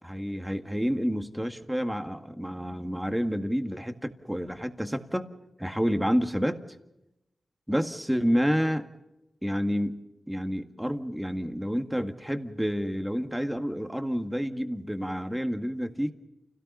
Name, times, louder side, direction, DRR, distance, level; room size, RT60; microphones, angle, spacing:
voice 1, 0.0-5.3 5.6-6.6 7.7-8.9 9.4-10.0 10.3-16.1, equal, 5° right, 7 dB, 1.9 m, -29 dB
29.0 x 17.5 x 5.6 m, 0.88 s
wide cardioid pair, 75°, 0 cm